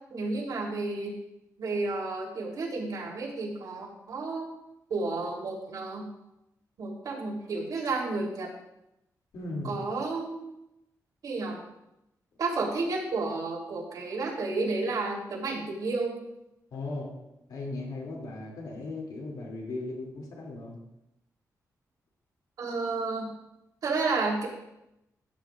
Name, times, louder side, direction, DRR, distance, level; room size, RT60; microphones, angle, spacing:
voice 1, 0.1-1.1 1.6-4.5 4.9-6.0 6.8-8.5 9.6-10.5 11.2-11.6 12.4-16.2 22.6-23.3 23.8-24.5, right 3 dB, 70° right, -2 dB, 3.6 m, -31 dB
voice 2, 9.3-9.7 16.7-17.1 17.5-20.8, left 2 dB, 90° left, -1 dB, 2.9 m, -37 dB
15.5 x 9.1 x 2.6 m, 0.88 s
wide cardioid pair, 120°, 7 cm